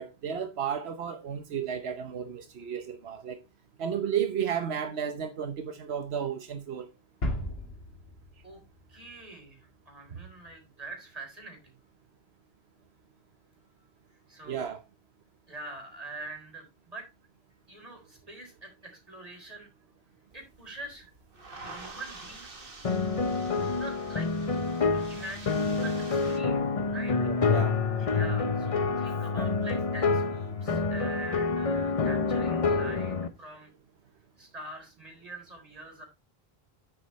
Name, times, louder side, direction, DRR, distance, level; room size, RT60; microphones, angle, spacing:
voice 1, 0.0-3.4 3.8-6.9 14.5-14.8 27.2-27.8, right 8 dB, 85° right, 1.1 m, -33 dB
sound 1, 7.2-9.9, left 1 dB, 75° left, 2.3 m, -36 dB
voice 2, 8.9-11.8 14.3-14.7 15.5-17.1 17.7-19.7 20.3-21.1 21.6-22.7 23.6-24.3 24.9-27.1 28.1-33.7 34.4-36.1, right 2 dB, 35° right, 4.1 m, -44 dB
sound 2, 20.3-26.4, right 3 dB, 60° right, 1.7 m, -47 dB
sound 3, 22.8-33.3, left 4 dB, 35° left, 0.8 m, -27 dB
9.8 x 8.0 x 3.1 m
omnidirectional pair, 1.0 m